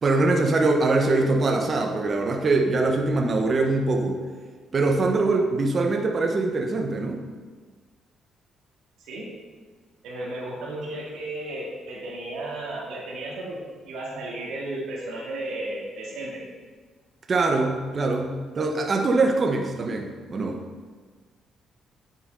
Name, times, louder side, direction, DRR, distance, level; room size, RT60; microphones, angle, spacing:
voice 1, 0.0-4.2 4.7-7.2 17.3-20.6, right 3 dB, 40° right, 3 dB, 1.1 m, -23 dB
voice 2, 10.0-13.6 13.8-16.5, right 1 dB, 85° right, -4 dB, 2.2 m, -34 dB
9.7 x 6.8 x 5.4 m, 1.5 s
cardioid pair, 90°, 0 cm